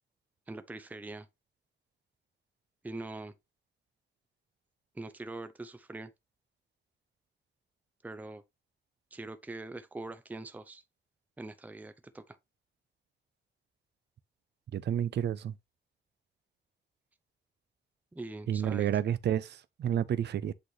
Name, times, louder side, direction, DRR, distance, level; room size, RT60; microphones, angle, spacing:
voice 1, 0.5-1.3 2.8-3.3 5.0-6.1 8.0-8.4 9.1-10.8 11.4-12.4 18.1-18.9, right 2 dB, 10° right, 0.5 m, -43 dB
voice 2, 14.7-15.5 18.5-20.5, right 9 dB, 60° right, 0.5 m, -30 dB
8.2 x 4.0 x 3.1 m
wide cardioid pair, 180°, 20 cm